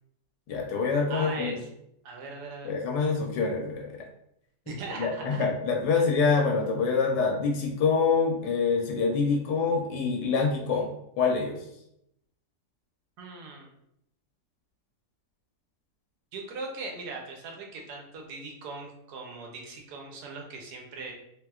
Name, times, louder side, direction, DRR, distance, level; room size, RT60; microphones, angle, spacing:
voice 1, 0.5-1.5 2.6-4.0 4.9-10.9 11.2-11.6, left 5 dB, 85° left, 1 dB, 1.2 m, -26 dB
voice 2, 1.1-1.7 2.0-2.7 4.7-5.3 13.2-13.7 16.3-21.1, right 3 dB, 75° right, 1 dB, 1.1 m, -39 dB
3.3 x 2.8 x 2.3 m, 0.77 s
omnidirectional pair, 1.8 m